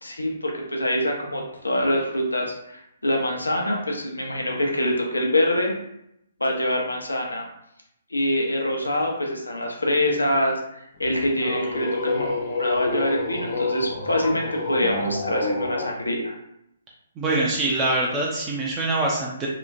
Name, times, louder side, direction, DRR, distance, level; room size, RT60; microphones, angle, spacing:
voice 1, 0.0-5.7 6.4-7.4 8.1-12.3 12.6-16.4, left 1 dB, 90° left, 1 dB, 0.6 m, -25 dB
sound 1, 11.0-15.9, left 3 dB, 45° left, 0.6 m, -28 dB
voice 2, 17.2-19.5, right 2 dB, 20° right, -3 dB, 0.5 m, -24 dB
2.9 x 2.1 x 2.5 m, 0.79 s
figure-of-eight pair, 135°, 0 cm